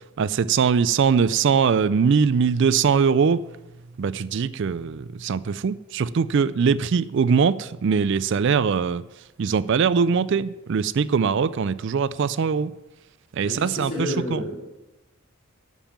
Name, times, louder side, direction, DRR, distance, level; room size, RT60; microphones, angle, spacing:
voice 1, 0.2-3.4 4.0-9.0 9.4-12.7 13.3-14.4, right 6 dB, 55° right, 0.4 m, -21 dB
voice 2, 13.4-14.6, left 1 dB, 45° left, 2.5 m, -30 dB
11.5 x 5.5 x 7.3 m
head